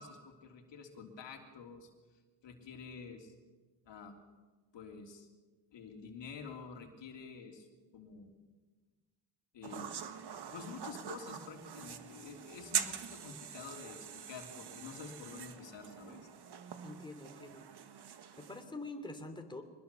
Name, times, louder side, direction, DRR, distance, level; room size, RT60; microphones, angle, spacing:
voice 1, 0.0-1.9 2.4-3.3 3.8-4.2 4.7-5.3 5.7-7.7 7.9-8.3 9.5-10.0 10.4-16.3, left 5 dB, 75° left, 3 dB, 3.3 m, -49 dB
sound 1, 9.6-18.6, right 8 dB, 60° right, 1.7 m, -43 dB
voice 2, 16.8-17.6 18.4-19.6, left 2 dB, 10° left, 4 dB, 2.9 m, -45 dB
24.0 x 21.0 x 6.9 m, 1.3 s
cardioid pair, 115°, 44 cm